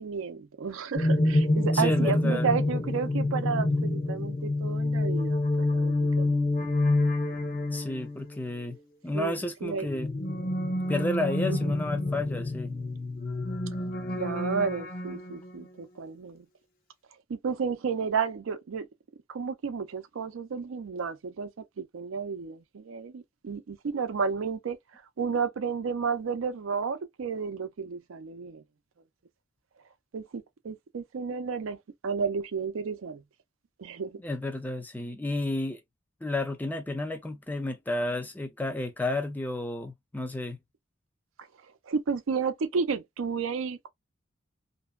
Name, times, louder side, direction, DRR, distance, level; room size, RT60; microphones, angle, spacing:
voice 1, 0.0-6.5 9.1-9.9 11.5-11.6 14.2-16.5 17.3-18.9 19.3-21.5 21.8-28.6 30.1-31.8 32.0-33.2 33.8-34.2 41.9-43.9, right 5 dB, 80° right, 0.5 m, -32 dB
sound 1, 1.0-8.4 9.7-15.6, left 2 dB, 45° left, 0.8 m, -28 dB
voice 2, 1.7-2.5 7.7-8.8 9.0-10.1 10.9-12.7 34.2-35.8 36.2-40.6, left 2 dB, 10° left, 0.4 m, -31 dB
2.6 x 2.1 x 2.3 m
head